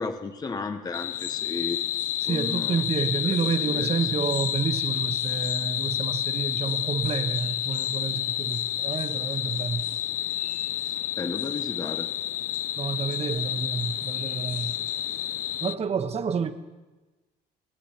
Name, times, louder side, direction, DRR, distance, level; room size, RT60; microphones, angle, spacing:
voice 1, 0.0-1.8 2.3-2.8 3.2-3.9 11.2-12.1, left 4 dB, 20° left, 7 dB, 0.8 m, -34 dB
sound 1, 0.9-15.7, left 13 dB, 50° left, 0.4 m, -29 dB
voice 2, 2.2-9.9 12.8-14.8 15.2-15.3 15.6-16.5, right 6 dB, 40° right, 9 dB, 1.2 m, -29 dB
27.0 x 9.9 x 4.4 m, 1.2 s
cardioid pair, 110°, 17 cm